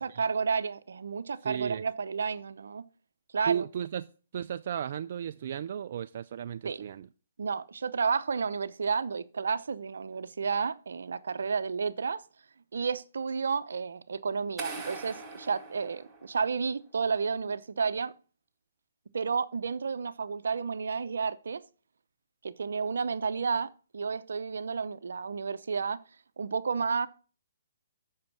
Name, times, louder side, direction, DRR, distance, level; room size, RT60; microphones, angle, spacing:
voice 1, 0.0-2.8 3.3-3.6 6.6-6.9 7.4-12.2 12.7-18.1 19.1-21.6 22.4-26.0 26.4-27.1, right 5 dB, 75° right, 0.7 m, -31 dB
voice 2, 1.4-1.8 3.5-4.1 4.3-7.1, right 9 dB, 50° right, 0.4 m, -34 dB
sound 1, 14.6-16.7, right 3 dB, 10° right, 1.6 m, -42 dB
7.5 x 6.3 x 6.0 m
hypercardioid pair, 155°, 0 cm